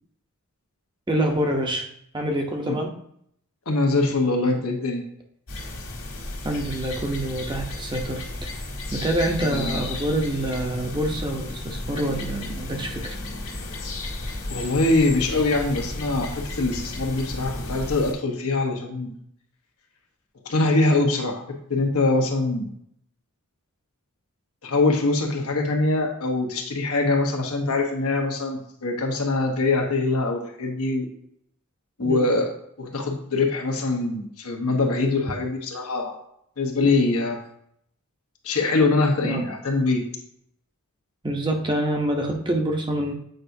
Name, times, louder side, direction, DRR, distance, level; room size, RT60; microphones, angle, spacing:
voice 1, 1.1-1.8 2.1-2.9 6.4-8.6 8.9-13.2 32.0-32.3 39.2-39.4 41.2-43.1, right 1 dB, 20° right, 3 dB, 0.7 m, -26 dB
voice 2, 3.7-5.0 9.5-9.8 14.5-19.1 20.4-22.7 24.6-31.1 32.0-32.5 32.8-36.2 36.6-37.4 38.4-40.0, left 2 dB, 85° left, 2 dB, 1.2 m, -23 dB
sound 1, 5.5-18.1, left 2 dB, 60° left, 1.7 m, -33 dB
7.8 x 4.6 x 2.7 m, 0.71 s
head